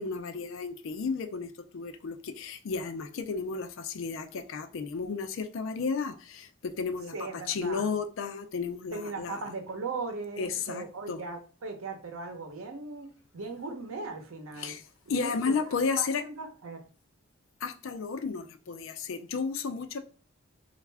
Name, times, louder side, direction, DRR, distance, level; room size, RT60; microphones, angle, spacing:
voice 1, 0.0-9.4 10.4-11.2 14.6-14.8 15.1-16.2 17.6-20.0, left 5 dB, 70° left, 0.4 m, -33 dB
voice 2, 7.1-7.9 8.9-14.7 15.1-15.3 16.0-16.8, right 3 dB, 85° right, 0.7 m, -38 dB
3.3 x 2.4 x 3.3 m
head